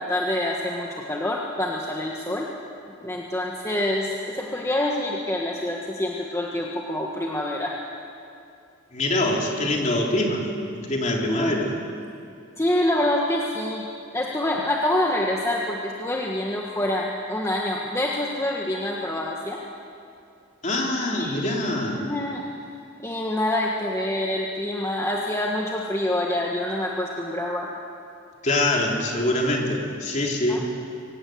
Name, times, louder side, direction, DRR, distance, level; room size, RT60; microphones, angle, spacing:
voice 1, 0.0-2.5 3.0-7.8 11.3-11.5 12.6-13.9 14.1-19.6 21.1-21.5 22.0-22.4 23.0-27.7 30.5-30.7, left 1 dB, 15° left, -2 dB, 1.5 m, -26 dB
voice 2, 8.9-10.4 10.7-11.7 20.6-22.0 28.4-30.7, left 1 dB, 35° left, -1 dB, 3.5 m, -24 dB
24.5 x 18.0 x 8.0 m, 2.5 s
head